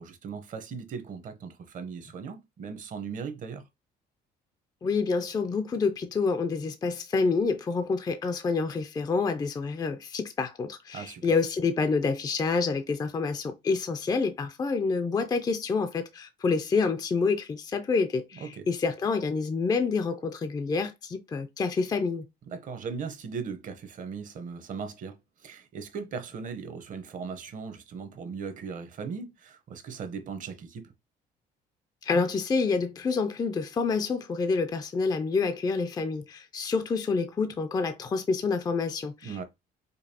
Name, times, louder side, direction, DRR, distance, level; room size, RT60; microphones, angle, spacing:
voice 1, 0.0-3.7 10.9-11.2 18.3-18.7 22.5-30.8 39.2-39.4, right 5 dB, 50° right, 0.8 m, -38 dB
voice 2, 4.8-22.3 32.0-39.4, left 4 dB, 25° left, 0.4 m, -28 dB
5.1 x 2.3 x 2.7 m
cardioid pair, 110°, 17 cm